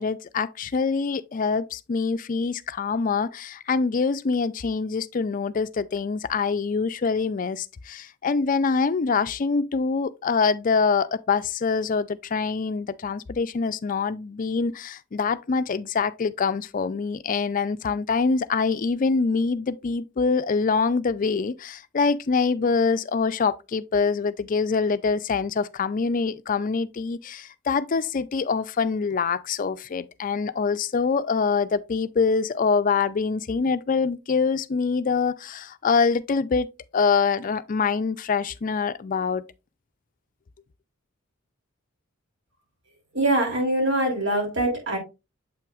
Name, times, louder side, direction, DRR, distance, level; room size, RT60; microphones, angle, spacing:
voice 1, 0.0-36.7 36.9-39.4, left 5 dB, 40° left, 0.4 m, -25 dB
voice 2, 43.1-45.0, right 1 dB, 60° right, 3.1 m, -23 dB
7.6 x 5.8 x 2.4 m
head